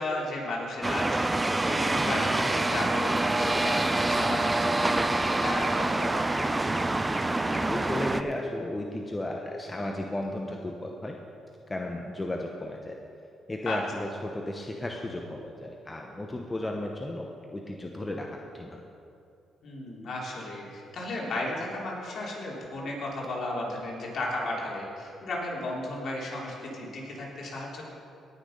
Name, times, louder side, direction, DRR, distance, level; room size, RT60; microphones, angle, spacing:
voice 1, 0.0-6.6 13.6-13.8 19.6-27.9, left 1 dB, 55° left, -4 dB, 3.3 m, -34 dB
sound 1, 0.8-8.2, right 2 dB, 15° right, 0.5 m, -26 dB
voice 2, 7.5-11.2 11.7-13.0 13.5-18.8, left 1 dB, 20° left, 1 dB, 0.9 m, -34 dB
18.0 x 6.2 x 5.2 m, 2.6 s
cardioid pair, 90°, 0 cm